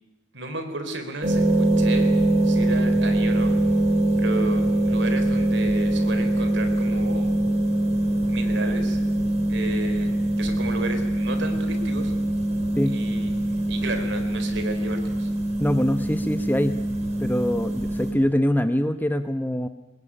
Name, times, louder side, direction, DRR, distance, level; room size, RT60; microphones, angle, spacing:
voice 1, 0.3-2.1 2.4-3.5 4.2-7.3 8.3-9.0 9.5-12.1 12.9-13.4 13.7-15.3, right 2 dB, 60° right, 7 dB, 3.9 m, -33 dB
sound 1, 1.2-18.1, right 1 dB, 35° right, 4.4 m, -23 dB
voice 2, 15.6-16.7 17.2-19.7, equal, 10° left, 9 dB, 1.0 m, -23 dB
22.0 x 21.0 x 9.9 m, 1.0 s
head